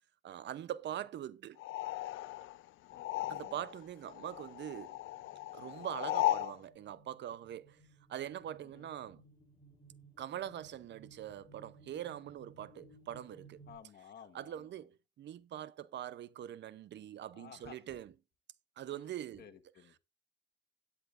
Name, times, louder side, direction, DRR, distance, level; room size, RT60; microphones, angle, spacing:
voice 1, 0.2-1.6 3.3-5.0 5.5-7.8 8.1-9.2 10.2-13.6 14.3-14.9 15.2-18.1 18.8-19.4, right 11 dB, 65° right, 0.7 m, -43 dB
sound 1, 1.6-3.8 4.1-6.6, left 16 dB, 80° left, 0.5 m, -36 dB
sound 2, 5.0-13.8, right 3 dB, 20° left, 6.2 m, -60 dB
voice 2, 13.7-14.7 17.3-18.0 18.9-19.9, left 8 dB, 55° left, 1.4 m, -55 dB
17.0 x 8.3 x 2.5 m
cardioid pair, 90°, 20 cm